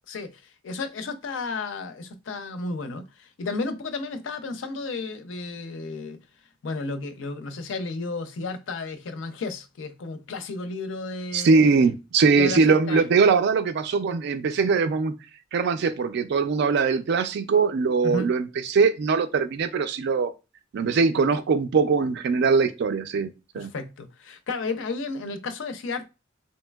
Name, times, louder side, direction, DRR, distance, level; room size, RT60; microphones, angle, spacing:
voice 1, 0.1-6.2 6.6-11.7 12.4-13.3 18.0-18.3 23.6-26.1, left 3 dB, 70° left, 0.4 m, -33 dB
voice 2, 11.3-15.1 15.5-20.3 20.7-23.3 23.5-23.7, right 4 dB, 60° right, 0.3 m, -21 dB
3.1 x 2.7 x 2.2 m
head